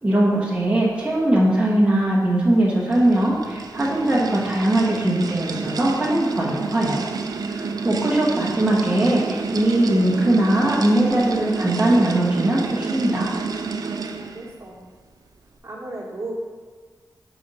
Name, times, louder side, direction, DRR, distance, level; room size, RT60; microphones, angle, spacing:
voice 1, 0.0-7.1 7.5-13.3, right 1 dB, 15° right, -5 dB, 0.9 m, -20 dB
sound 1, 2.4-14.5, right 4 dB, 65° right, 0.4 m, -29 dB
voice 2, 14.2-14.8 15.6-16.3, right 2 dB, 40° right, -3 dB, 1.2 m, -35 dB
5.0 x 4.0 x 5.2 m, 1.4 s
wide cardioid pair, 115°, 7 cm